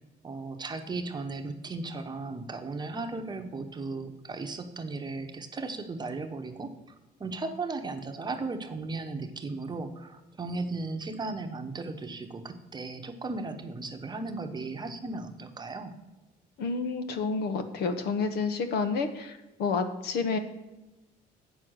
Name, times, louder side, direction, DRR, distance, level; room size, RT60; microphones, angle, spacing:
voice 1, 0.2-6.7 7.2-15.9, right 3 dB, 25° right, 6 dB, 1.0 m, -36 dB
voice 2, 16.6-20.4, left 4 dB, 70° left, 9 dB, 1.1 m, -29 dB
8.2 x 6.4 x 6.3 m, 1.0 s
cardioid pair, 110°, 17 cm